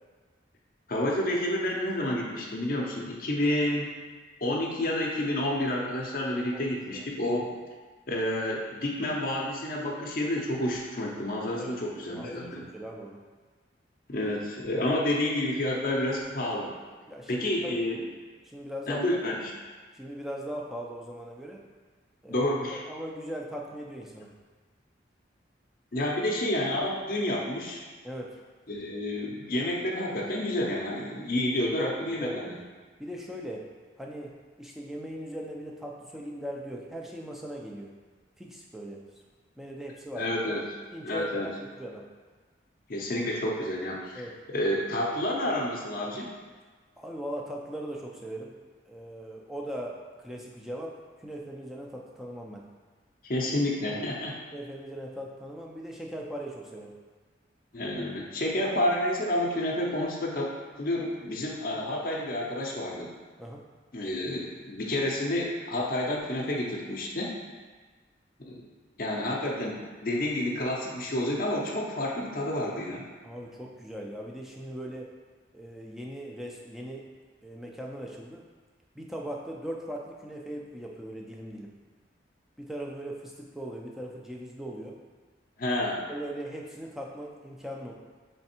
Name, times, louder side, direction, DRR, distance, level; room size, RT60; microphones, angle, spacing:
voice 1, 0.9-3.9 4.4-7.5 8.1-12.6 14.1-16.7 17.3-18.0 18.9-19.5 22.3-22.8 25.9-27.8 28.7-32.6 40.2-40.7 41.0-41.5 42.9-44.2 44.5-46.3 53.2-54.3 57.7-60.5 60.8-63.1 63.9-67.3 68.4-68.7 69.0-73.1 85.6-86.0, left 1 dB, 50° left, -2 dB, 0.5 m, -29 dB
voice 2, 6.5-7.1 11.6-11.8 12.1-13.2 14.7-14.8 17.1-17.8 18.4-19.0 19.9-21.6 22.2-24.3 28.0-28.4 31.6-32.5 33.0-33.7 34.0-37.9 38.4-39.0 39.6-40.6 40.9-42.0 44.2-44.3 47.0-48.5 48.9-52.6 54.5-56.9 63.4-63.6 73.2-75.1 75.5-77.1 77.4-78.4 78.9-81.7 82.6-85.0 86.1-87.9, equal, ahead, -1 dB, 0.4 m, -39 dB
3.5 x 3.2 x 4.3 m, 1.4 s
head